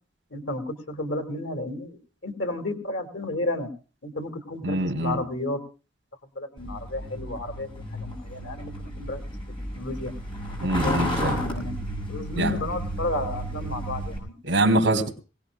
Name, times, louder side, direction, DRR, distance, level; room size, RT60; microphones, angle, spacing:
voice 1, 0.3-3.7 4.0-5.7 6.4-9.2 9.7-10.1 10.8-11.7 12.1-14.4, left 2 dB, 80° left, 5 dB, 2.3 m, -32 dB
voice 2, 4.6-5.2 10.6-11.4 12.4-12.5 14.5-15.1, right 1 dB, 75° right, 3 dB, 3.2 m, -23 dB
Truck, 6.6-14.2, equal, 30° left, 7.6 m, -33 dB
23.0 x 18.0 x 2.3 m, 0.34 s
head